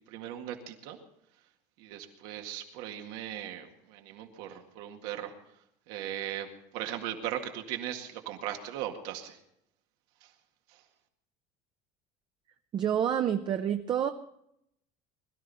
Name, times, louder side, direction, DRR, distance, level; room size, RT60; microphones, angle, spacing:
voice 1, 0.1-1.0 1.8-5.3 5.9-6.5 6.7-9.4, right 11 dB, 85° right, 4 dB, 2.0 m, -38 dB
voice 2, 12.7-14.1, right 9 dB, 30° right, 7 dB, 0.6 m, -28 dB
21.5 x 13.0 x 4.2 m, 0.77 s
cardioid pair, 150°, 14 cm